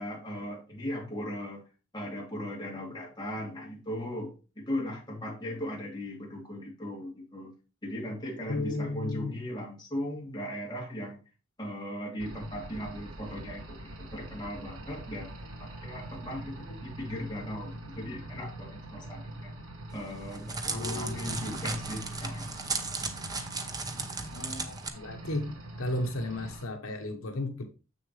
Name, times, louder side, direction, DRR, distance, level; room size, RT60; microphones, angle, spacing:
voice 1, 0.0-1.6 1.9-4.3 4.6-7.5 7.8-11.2 11.6-19.5 19.9-22.5, left 1 dB, 20° left, -2 dB, 2.8 m, -38 dB
voice 2, 8.5-9.3 20.6-21.3 24.3-27.6, left 2 dB, 80° left, 5 dB, 1.0 m, -35 dB
sound 1, 12.2-26.6, right 1 dB, 80° right, 2.5 m, -43 dB
Crackle, 19.9-24.9, right 3 dB, 20° right, 0.9 m, -36 dB
7.5 x 6.8 x 3.2 m, 0.32 s
head